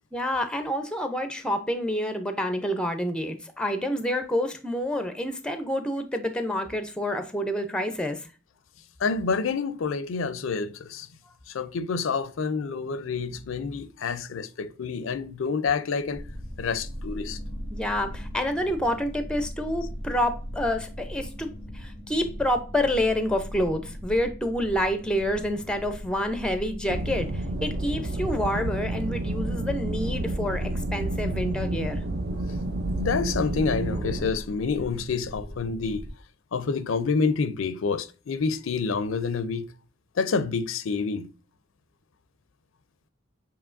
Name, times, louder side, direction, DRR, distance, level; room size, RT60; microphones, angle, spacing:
voice 1, 0.1-8.3 17.7-21.5 21.7-32.0, left 1 dB, 5° left, 0.5 m, -28 dB
voice 2, 9.0-11.1 11.5-16.2 16.6-17.4 32.3-36.1 36.5-39.7 40.2-41.3, left 5 dB, 75° left, 0.4 m, -28 dB
sound 1, 16.2-36.1, equal, 25° right, 1.3 m, -39 dB
sound 2, 26.9-34.3, right 2 dB, 50° right, 0.5 m, -30 dB
6.9 x 3.0 x 2.5 m
head